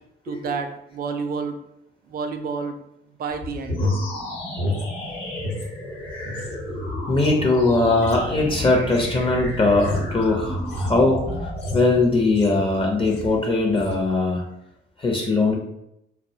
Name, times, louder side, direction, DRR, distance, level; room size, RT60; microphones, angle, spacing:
voice 1, 0.3-1.6 2.1-2.7 3.2-3.8, right 5 dB, 50° right, 7 dB, 0.4 m, -29 dB
sound 1, 3.3-5.7 6.0-12.7 13.0-13.4 13.7-14.0, left 1 dB, 60° left, 0.7 m, -31 dB
sound 2, 3.7-13.2, left 1 dB, 85° left, 1.0 m, -33 dB
voice 2, 7.1-14.4 15.0-15.6, left 2 dB, 25° left, 0 dB, 0.5 m, -20 dB
2.4 x 2.0 x 2.7 m, 0.81 s
cardioid pair, 90°, 20 cm